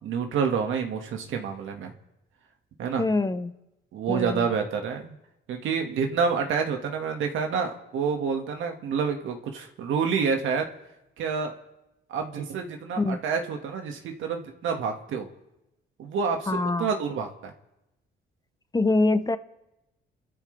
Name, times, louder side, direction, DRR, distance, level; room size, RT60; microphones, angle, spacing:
voice 1, 0.0-1.9 2.8-3.0 3.9-5.2 5.5-10.7 11.2-11.5 12.1-15.3 16.0-17.5, right 6 dB, 80° right, 4 dB, 2.0 m, -28 dB
voice 2, 3.0-3.5 4.1-4.5 13.0-13.2 16.5-16.9 18.7-19.4, left 2 dB, 20° left, 11 dB, 1.0 m, -24 dB
30.0 x 13.0 x 3.4 m, 0.92 s
cardioid pair, 90°, 20 cm